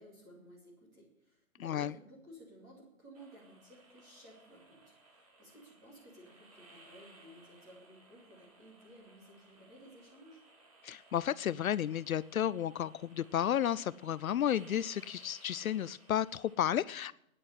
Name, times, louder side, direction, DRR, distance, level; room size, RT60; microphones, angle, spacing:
voice 1, 0.0-10.4, equal, 10° right, -4 dB, 2.6 m, -56 dB
voice 2, 1.6-1.9 10.8-17.1, left 10 dB, 75° left, 19 dB, 0.5 m, -32 dB
sound 1, 3.1-16.5, right 2 dB, 25° right, 2.3 m, -61 dB
10.0 x 8.7 x 10.0 m, 0.82 s
hypercardioid pair, 180°, 43 cm